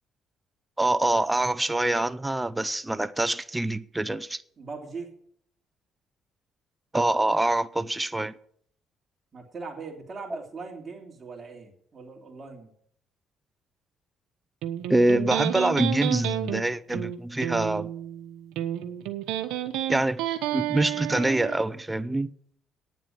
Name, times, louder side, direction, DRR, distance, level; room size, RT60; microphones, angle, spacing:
voice 1, 0.8-4.4 6.9-8.3 14.9-17.9 19.9-20.2 20.5-22.3, right 2 dB, 10° right, 0.6 m, -25 dB
voice 2, 4.6-5.1 9.3-12.7, right 4 dB, 35° right, 3.0 m, -40 dB
Electric guitar, 14.6-21.6, right 12 dB, 85° right, 1.0 m, -31 dB
9.5 x 7.4 x 9.2 m
cardioid pair, 85°, 0 cm